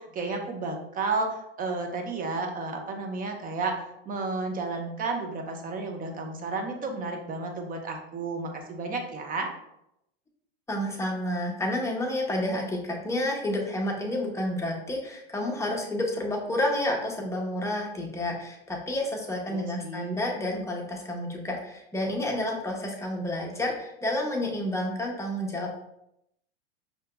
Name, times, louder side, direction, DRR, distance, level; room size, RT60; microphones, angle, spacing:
voice 1, 0.0-9.5 19.4-20.2, right 3 dB, 25° right, 3 dB, 0.8 m, -32 dB
voice 2, 10.7-25.8, left 1 dB, 10° left, -1 dB, 0.9 m, -30 dB
5.5 x 2.9 x 2.2 m, 0.79 s
hypercardioid pair, 95°, 31 cm